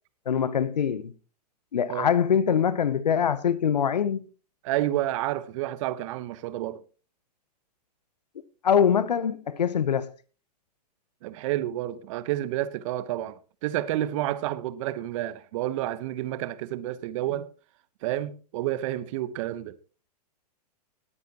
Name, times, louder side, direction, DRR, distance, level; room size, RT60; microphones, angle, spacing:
voice 1, 0.3-1.1 1.7-4.3 8.6-10.1, left 8 dB, 80° left, 0.9 m, -23 dB
voice 2, 4.6-6.8 11.2-17.5 18.0-19.8, right 14 dB, 50° right, 1.0 m, -30 dB
20.0 x 9.4 x 2.9 m
hypercardioid pair, 110°, 21 cm